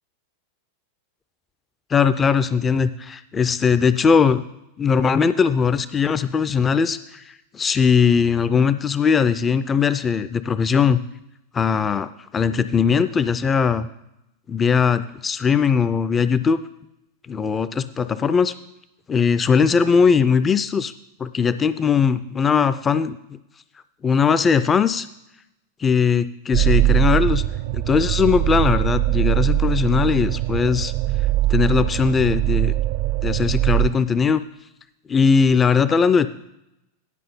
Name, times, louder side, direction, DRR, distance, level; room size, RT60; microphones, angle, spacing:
voice 1, 1.9-4.4 4.8-7.2 7.5-11.0 11.5-13.9 14.5-16.6 17.3-18.5 19.1-20.9 21.2-23.4 24.0-25.1 25.8-27.4 27.7-30.9 31.5-32.7 33.2-34.4 35.1-36.3, left 6 dB, 20° left, 13 dB, 0.4 m, -19 dB
sound 1, 26.5-33.9, right 15 dB, 50° right, 0.4 m, -21 dB
11.0 x 5.3 x 5.5 m, 0.87 s
figure-of-eight pair, 90°, 0 cm